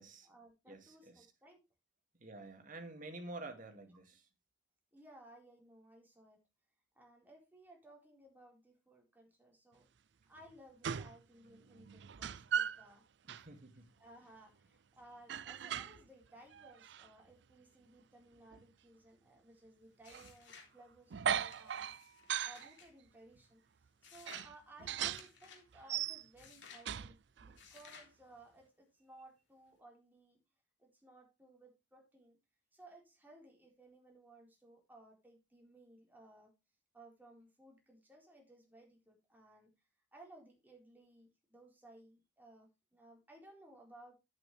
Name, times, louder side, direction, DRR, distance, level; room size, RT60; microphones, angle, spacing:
voice 1, 0.0-1.6 4.9-6.4 6.9-9.9 10.3-13.0 14.0-22.0 22.2-23.6 24.0-30.4 30.8-32.4 32.7-36.5 36.9-39.7 40.1-44.2, right 1 dB, 10° right, 4.4 m, -60 dB
voice 2, 0.7-1.3 2.2-4.3 13.3-13.9, right 2 dB, 45° right, 2.3 m, -49 dB
sound 1, 10.4-10.5 10.8-11.2 11.5-12.9 13.3-13.5 15.3-16.1 16.5-17.1 18.5-18.6 20.1-20.3 21.1-22.7 23.4-23.5 24.3-25.3 25.7-26.5 26.8-27.6, right 8 dB, 65° right, 0.5 m, -39 dB
sound 2, 20.0-20.7 21.3-22.9 24.0-24.5 25.1-25.6 26.4-26.9 27.6-28.1, left 5 dB, 75° left, 3.3 m, -57 dB
10.5 x 9.3 x 3.3 m
head